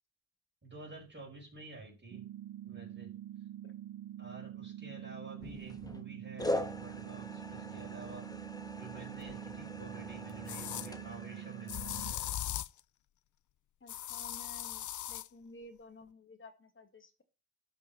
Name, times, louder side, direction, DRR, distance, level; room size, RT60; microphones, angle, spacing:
voice 1, 0.6-2.2 2.6-3.1 4.2-8.4 8.8-12.3, right 3 dB, 30° right, -3 dB, 5.3 m, -50 dB
sound 1, 2.1-12.1, right 12 dB, 90° right, 0.8 m, -46 dB
sound 2, 5.4-6.0 6.4-12.3, left 1 dB, 10° left, 1.2 m, -42 dB
sound 3, 9.3-9.4 10.5-10.9 11.7-12.8 13.9-15.3, left 12 dB, 60° left, 0.5 m, -39 dB
voice 2, 13.8-17.2, left 1 dB, 35° left, 9 dB, 1.9 m, -54 dB
12.0 x 5.5 x 7.0 m, 0.32 s
cardioid pair, 95°, 35 cm